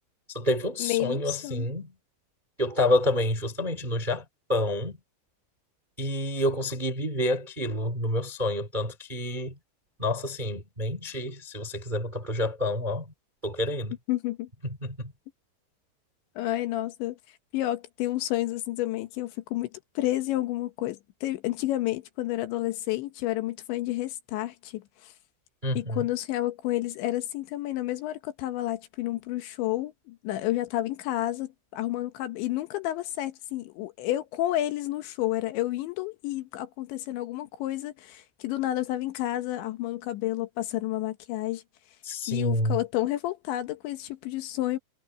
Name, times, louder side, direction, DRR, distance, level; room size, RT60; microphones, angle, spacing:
voice 1, 0.3-1.9 2.6-5.0 6.0-9.5 10.0-13.1 13.4-13.9 14.6-15.0 25.6-26.1 42.0-42.8, left 1 dB, 20° right, 1.1 m, -28 dB
voice 2, 0.8-1.7 14.1-14.5 16.4-17.2 17.5-19.7 20.0-25.1 25.7-41.6 42.3-44.8, left 15 dB, 75° left, 3.4 m, -30 dB
omnidirectional pair, 5.5 m